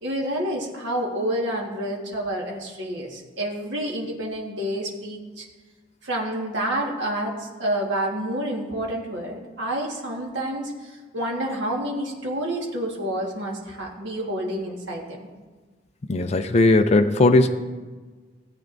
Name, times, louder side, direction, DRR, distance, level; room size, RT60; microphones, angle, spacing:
voice 1, 0.0-5.5 6.0-15.3, right 1 dB, 70° right, -1 dB, 1.6 m, -29 dB
voice 2, 16.1-17.5, left 2 dB, 35° left, 6 dB, 0.4 m, -17 dB
16.5 x 8.2 x 2.6 m, 1.4 s
head